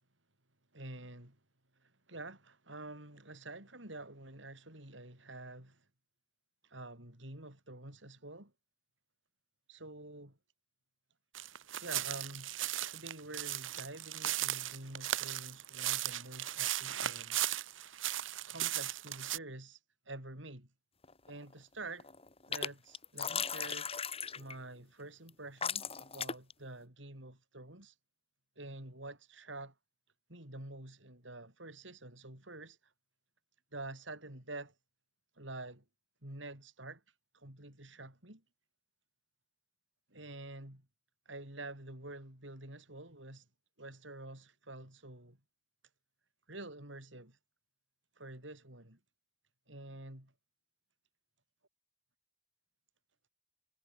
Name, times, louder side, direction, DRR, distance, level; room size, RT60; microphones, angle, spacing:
voice 1, 0.7-1.4 1.8-5.8 6.6-8.5 9.7-10.4 11.8-12.5 12.9-17.4 18.5-19.8 20.1-20.7 21.3-22.1 22.5-23.9 24.3-27.9 28.6-29.7 30.3-32.8 33.7-34.7 35.4-35.8 36.2-37.0 37.3-38.4 40.1-40.9 41.3-43.4 43.8-45.4 46.5-47.4 48.2-49.0 49.7-50.3, right 2 dB, 70° right, 6.4 m, -48 dB
sound 1, 11.3-19.4, right 13 dB, 85° right, 1.3 m, -36 dB
sound 2, 21.0-21.5 21.8-22.7 22.9-24.6 25.3-25.4 25.6-26.5, left 6 dB, 30° left, 3.9 m, -37 dB
head